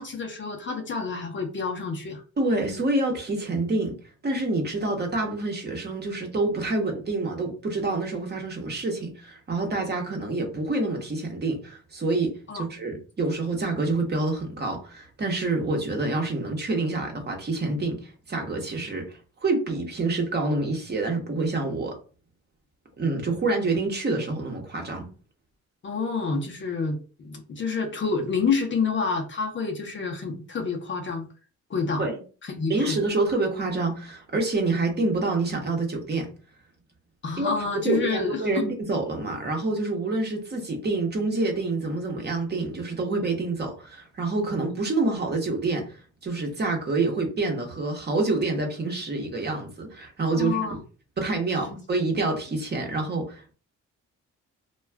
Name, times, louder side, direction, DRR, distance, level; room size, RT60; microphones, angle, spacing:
voice 1, 0.0-2.2 12.5-12.6 25.8-31.3 31.7-32.1 32.4-33.0 37.2-38.7 50.3-50.8, left 4 dB, 40° left, 3 dB, 0.7 m, -28 dB
voice 2, 2.4-3.9 4.2-22.0 23.0-25.1 32.0-32.2 32.7-36.3 37.4-37.5 37.8-50.6 51.2-53.5, right 2 dB, 35° right, 2 dB, 0.9 m, -27 dB
2.3 x 2.3 x 3.3 m, 0.37 s
cardioid pair, 90°, 30 cm